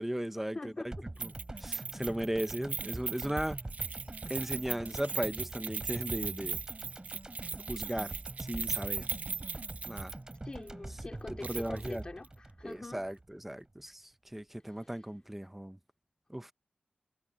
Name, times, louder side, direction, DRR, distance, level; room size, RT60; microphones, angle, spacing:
voice 1, 0.0-0.7 1.2-1.3 1.6-3.6 4.3-6.6 7.7-9.1 9.9-10.1 11.3-12.0 12.6-15.8 16.3-16.5, right 1 dB, 5° right, 0.8 m, -36 dB
voice 2, 0.5-1.1 10.4-13.0, left 2 dB, 30° left, 3.7 m, -44 dB
sound 1, 0.9-13.2 13.5-13.6, right 2 dB, 20° right, 3.8 m, -44 dB
Keys jangling, 1.2-10.4 10.7-10.8 11.4-11.9 12.2-12.3, right 5 dB, 60° right, 0.4 m, -39 dB
sound 2, 1.5-3.4 4.6-6.4, left 4 dB, 55° left, 7.1 m, -62 dB
wide cardioid pair, 95°, 3 cm